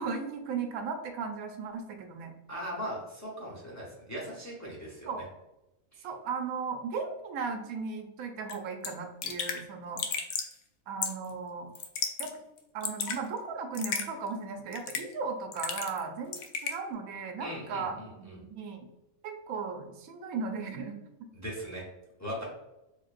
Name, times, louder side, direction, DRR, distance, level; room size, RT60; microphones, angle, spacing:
voice 1, 0.0-2.3 5.1-5.3 6.0-10.0 10.9-11.7 12.2-12.3 12.7-18.9 19.2-21.3, right 5 dB, 85° right, 4 dB, 1.1 m, -36 dB
voice 2, 2.5-5.1 5.9-6.1 17.4-18.4 21.3-21.8 22.2-22.4, equal, 15° left, -5 dB, 0.8 m, -39 dB
Raindrop / Drip, 8.5-8.6 8.8-8.9 9.2-9.6 10.0-10.5 11.0-11.3 11.7-12.3 12.6-13.2 13.7-14.1 14.7-15.1 15.5-16.0 16.3-16.8, left 6 dB, 65° left, 0.7 m, -33 dB
4.4 x 2.6 x 2.5 m, 0.92 s
omnidirectional pair, 1.5 m